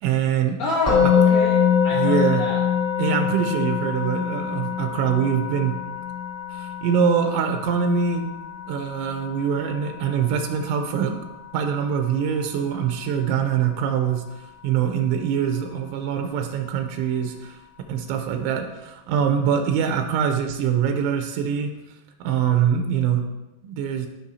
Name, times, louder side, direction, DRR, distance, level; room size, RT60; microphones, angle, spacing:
voice 1, 0.0-0.6 2.0-2.4 3.0-5.8 6.5-8.3 8.7-11.1 11.5-14.2 14.6-17.6 17.9-21.7 22.2-23.2 23.6-24.1, right 7 dB, 85° right, 5 dB, 3.1 m, -23 dB
voice 2, 0.6-2.6, left 2 dB, 85° left, -6 dB, 1.5 m, -28 dB
Musical instrument, 0.9-12.0, left 7 dB, 20° left, 1.6 m, -24 dB
14.5 x 6.0 x 2.8 m, 1.0 s
omnidirectional pair, 5.3 m